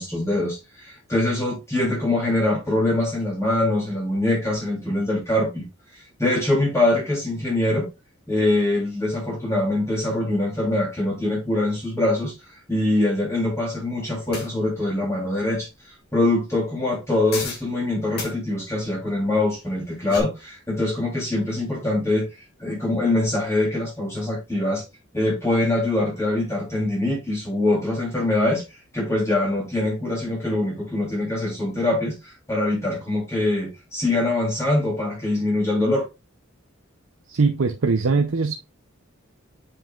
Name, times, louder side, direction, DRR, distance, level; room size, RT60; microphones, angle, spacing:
voice 1, 0.0-5.6 6.2-7.8 8.3-12.3 12.7-15.7 16.1-22.3 22.6-24.8 25.1-28.6 28.9-36.1, left 2 dB, 15° left, 3.2 m, -23 dB
sound 1, 14.3-14.5 17.3-17.7 18.1-18.3 19.8-20.2, left 4 dB, 50° left, 2.0 m, -32 dB
voice 2, 37.3-38.6, right 4 dB, 75° right, 0.7 m, -21 dB
7.5 x 5.5 x 2.4 m
head